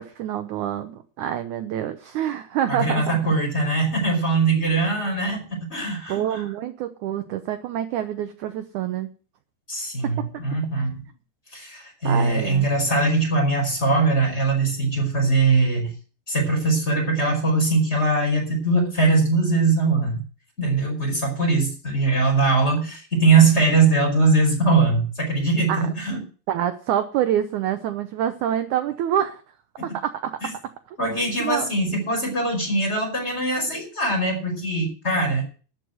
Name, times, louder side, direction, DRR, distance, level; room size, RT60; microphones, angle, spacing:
voice 1, 0.0-3.4 6.1-9.1 10.0-10.3 10.8-10.9 12.0-12.7 25.7-25.9 26.5-29.4 29.8-30.5 31.4-31.7, right 10 dB, 75° right, 9 dB, 1.8 m, -26 dB
voice 2, 2.7-6.4 9.7-11.0 11.5-15.9 16.3-20.2 20.6-26.2 29.8-29.9 30.4-30.5 31.0-35.4, right 3 dB, 15° left, 0 dB, 4.9 m, -21 dB
13.0 x 6.3 x 9.1 m, 0.39 s
omnidirectional pair, 4.4 m